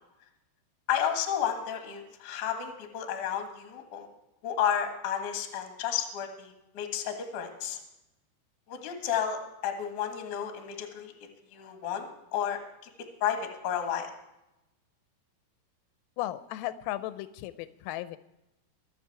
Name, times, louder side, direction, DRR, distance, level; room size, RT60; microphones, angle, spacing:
voice 1, 0.9-4.1 4.4-7.8 8.7-11.1 11.5-12.6 13.2-14.1, left 9 dB, 60° left, 5 dB, 2.1 m, -32 dB
voice 2, 16.2-18.2, left 14 dB, 85° left, 14 dB, 3.2 m, -35 dB
23.0 x 7.8 x 4.7 m, 0.91 s
omnidirectional pair, 5.9 m